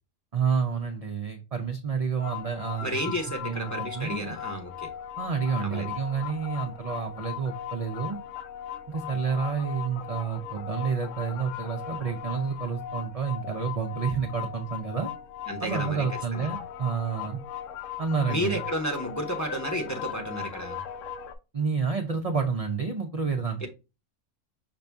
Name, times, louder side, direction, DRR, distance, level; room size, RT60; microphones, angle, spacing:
voice 1, 0.3-3.0 3.4-4.3 5.2-8.2 8.9-15.1 15.6-17.4 18.0-18.6 21.5-23.7, right 6 dB, 50° right, 3 dB, 0.4 m, -29 dB
sound 1, 2.2-21.3, left 9 dB, 75° left, 1.0 m, -38 dB
voice 2, 2.8-4.9 5.6-5.9 15.5-16.1 16.3-16.5 18.3-20.8 23.6-23.7, equal, 15° left, 2 dB, 0.7 m, -32 dB
6.0 x 2.6 x 3.4 m, 0.28 s
omnidirectional pair, 1.4 m